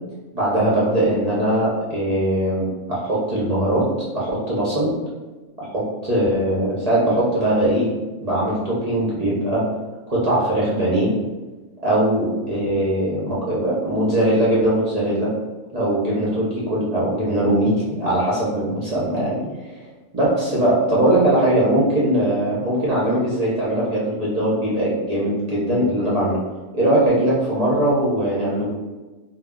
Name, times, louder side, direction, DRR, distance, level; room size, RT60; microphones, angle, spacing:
voice 1, 0.3-3.9 4.1-4.9 5.6-7.9 8.2-9.6 10.1-11.1 11.8-15.3 15.7-19.9 20.1-26.4 26.7-28.7, right 1 dB, 45° right, -7 dB, 0.5 m, -20 dB
2.2 x 2.1 x 3.5 m, 1.2 s
omnidirectional pair, 1.4 m